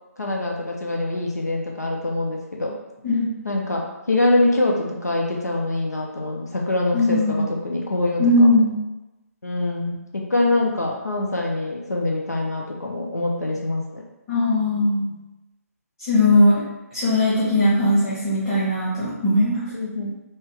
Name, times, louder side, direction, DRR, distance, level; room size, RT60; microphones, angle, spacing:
voice 1, 0.2-2.7 3.4-8.5 9.4-14.0 19.7-20.1, left 2 dB, 85° left, -1 dB, 0.8 m, -24 dB
voice 2, 3.0-3.4 6.9-7.5 8.2-8.8 14.3-15.1 16.0-16.6 16.9-19.6, left 1 dB, 25° left, -11 dB, 1.3 m, -19 dB
5.6 x 2.2 x 3.4 m, 1.0 s
figure-of-eight pair, 140°, 9 cm